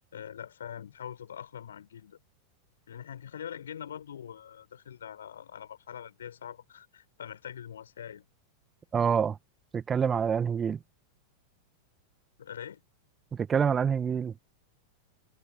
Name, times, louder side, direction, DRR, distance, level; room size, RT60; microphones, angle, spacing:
voice 1, 0.1-2.2 2.9-8.3 12.4-12.8, left 9 dB, 65° left, 7.0 m, -43 dB
voice 2, 8.9-9.4 9.7-10.8 13.3-14.3, right 7 dB, 20° right, 1.9 m, -26 dB
figure-of-eight pair, 90°, 0 cm